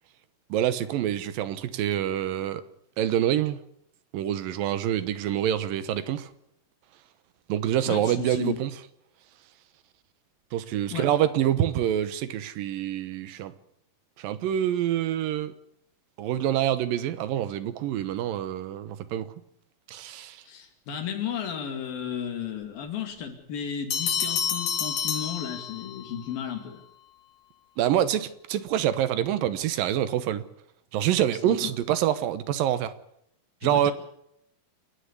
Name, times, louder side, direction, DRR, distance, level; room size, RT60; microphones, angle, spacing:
voice 1, 0.5-2.6 3.0-3.6 4.1-6.3 7.5-8.7 10.5-13.5 14.2-15.5 16.2-19.3 19.9-20.4 27.8-30.4 30.9-32.9 33.6-33.9, right 11 dB, 80° right, 2.8 m, -26 dB
voice 2, 7.9-8.6 10.9-11.1 20.4-26.8 31.4-31.7 33.6-33.9, left 8 dB, 90° left, 4.4 m, -34 dB
sound 1, 23.9-26.1, left 7 dB, 70° left, 3.6 m, -29 dB
28.0 x 10.0 x 9.7 m
omnidirectional pair, 4.0 m